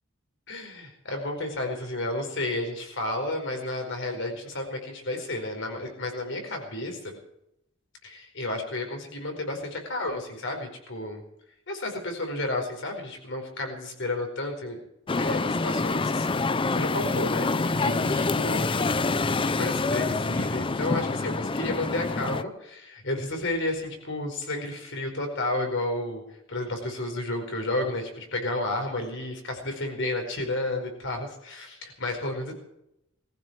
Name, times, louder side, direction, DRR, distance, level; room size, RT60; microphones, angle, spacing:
voice 1, 0.5-7.2 8.0-11.2 11.7-14.8 15.2-19.0 19.5-26.2 26.5-32.5, left 2 dB, 60° left, 3 dB, 4.8 m, -32 dB
sound 1, 15.1-22.4, left 3 dB, 25° left, 0.5 m, -26 dB
20.5 x 14.5 x 4.8 m, 0.82 s
head